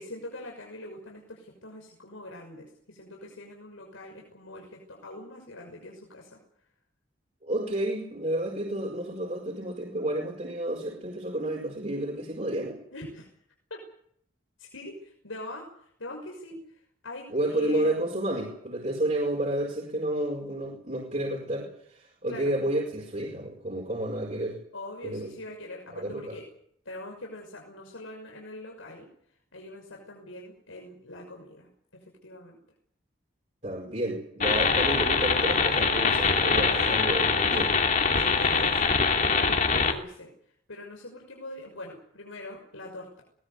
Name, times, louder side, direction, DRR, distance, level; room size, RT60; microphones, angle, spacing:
voice 1, 0.0-6.4 12.9-13.3 13.7-13.8 14.6-18.0 22.3-22.5 24.7-26.5 26.8-29.1 29.5-31.7 32.2-32.6 36.8-37.0 38.1-40.3 40.7-43.2, left 1 dB, 85° left, 1 dB, 6.2 m, -43 dB
voice 2, 7.4-12.8 17.3-24.6 25.0-25.3 25.9-26.3 33.6-37.7, right 1 dB, 35° right, -1 dB, 4.8 m, -30 dB
sound 1, 34.4-39.9, left 5 dB, 40° left, 2.8 m, -23 dB
22.5 x 20.0 x 8.2 m, 0.66 s
head